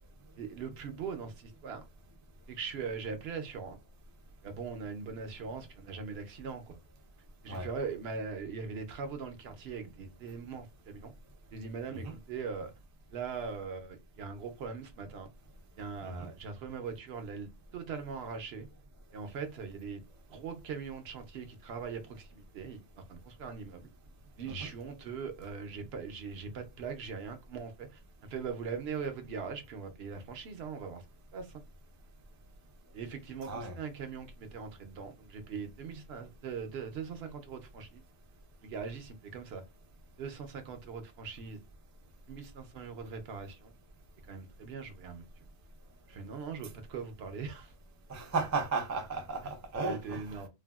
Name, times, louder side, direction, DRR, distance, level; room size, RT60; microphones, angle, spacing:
voice 1, 0.4-1.8 2.5-3.8 4.4-6.8 7.4-11.1 11.5-12.7 13.1-15.3 15.8-18.7 19.1-20.0 20.3-22.8 23.1-23.9 24.4-28.0 28.3-31.0 31.3-31.5 32.9-38.0 38.6-39.6 40.2-41.6 42.3-43.7 44.3-45.3 46.1-47.7 49.8-50.5, right 5 dB, 70° right, 0.8 m, -41 dB
voice 2, 33.4-33.8 48.1-50.4, right 3 dB, 25° right, 0.4 m, -35 dB
3.3 x 2.2 x 2.3 m
omnidirectional pair, 1.1 m